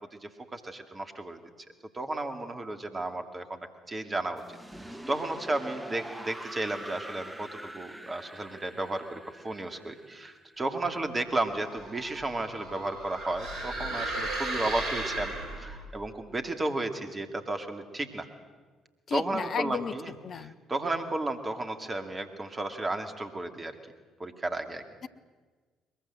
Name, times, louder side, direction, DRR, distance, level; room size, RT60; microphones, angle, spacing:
voice 1, 0.1-1.4 1.9-4.4 4.8-18.3 19.1-20.1 20.7-23.7 24.2-24.8, right 2 dB, 25° right, 7 dB, 2.7 m, -33 dB
sound 1, 4.4-11.3, right 1 dB, 10° right, 2.3 m, -44 dB
sound 2, 11.5-15.8, right 2 dB, 50° right, 7.8 m, -35 dB
voice 2, 19.1-20.6, left 6 dB, 45° left, 12 dB, 1.0 m, -34 dB
22.0 x 22.0 x 7.8 m, 1.4 s
figure-of-eight pair, 45°, 0 cm